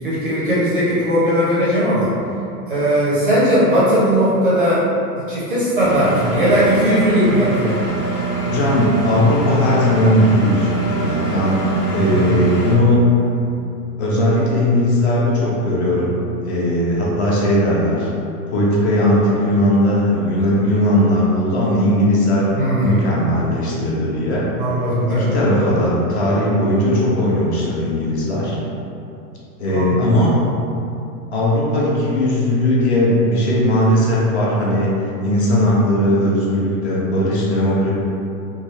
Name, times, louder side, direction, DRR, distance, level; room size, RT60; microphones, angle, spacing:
voice 1, 0.0-2.1 2.7-4.8 5.3-7.8 12.1-12.4 22.6-23.0 24.6-25.3 29.7-30.0, equal, 35° right, -9 dB, 0.4 m, -18 dB
Engine, 5.8-12.7, right 4 dB, 65° left, 0.9 m, -24 dB
voice 2, 8.4-13.1 14.0-16.1 16.4-18.1 18.5-22.5 22.7-24.4 25.1-28.6 29.6-30.4 31.3-34.9 35.2-37.9, left 1 dB, 45° left, -5 dB, 0.5 m, -18 dB
3.0 x 2.3 x 2.9 m, 2.7 s
supercardioid pair, 175°, 49 cm